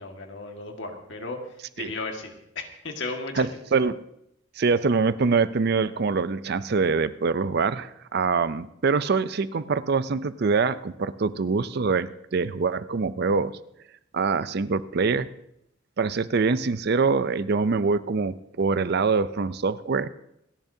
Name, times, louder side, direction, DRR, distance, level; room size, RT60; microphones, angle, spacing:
voice 1, 0.0-1.4 1.8-3.5, left 3 dB, 60° left, 3 dB, 1.8 m, -35 dB
voice 2, 3.3-4.0 4.6-13.6 14.1-15.3 16.0-20.1, right 4 dB, 50° right, 15 dB, 0.5 m, -24 dB
27.5 x 10.5 x 2.8 m, 0.79 s
head